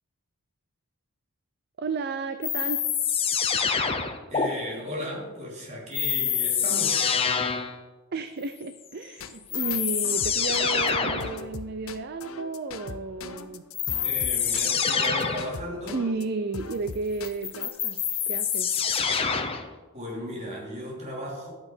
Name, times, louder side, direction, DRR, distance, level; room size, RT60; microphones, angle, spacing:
voice 1, 1.8-2.8 8.1-13.6 15.9-18.0 18.3-18.7, right 3 dB, 45° right, 9 dB, 0.5 m, -32 dB
sound 1, 2.4-4.5 5.9-7.8 9.0-9.1 9.5-11.4 13.7-15.5 17.2-19.7, left 7 dB, 25° left, 0.7 m, -26 dB
voice 2, 4.3-7.1 14.0-16.0 19.9-21.5, equal, 30° right, -2 dB, 2.8 m, -36 dB
sound 2, 9.2-16.2 16.5-17.7, left 4 dB, 70° left, 0.7 m, -40 dB
12.5 x 8.6 x 4.4 m, 1.3 s
head